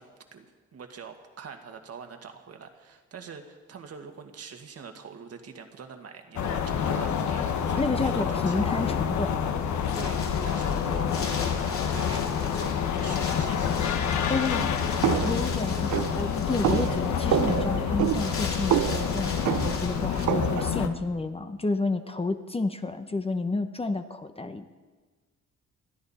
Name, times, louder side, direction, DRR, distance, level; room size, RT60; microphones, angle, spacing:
voice 1, 0.0-8.7 9.9-15.3, right 6 dB, 55° right, 5 dB, 1.8 m, -44 dB
sound 1, 6.4-20.9, left 7 dB, 70° left, 1.2 m, -28 dB
voice 2, 7.8-9.5 9.9-10.0 14.3-14.8 15.2-24.7, left 3 dB, 20° left, 8 dB, 0.9 m, -30 dB
Wind, 9.0-20.2, left 4 dB, 45° left, 3.0 m, -40 dB
sound 2, 15.0-20.8, right 13 dB, 75° right, 0.6 m, -28 dB
21.5 x 13.0 x 4.3 m, 1.4 s
cardioid pair, 90°, 30 cm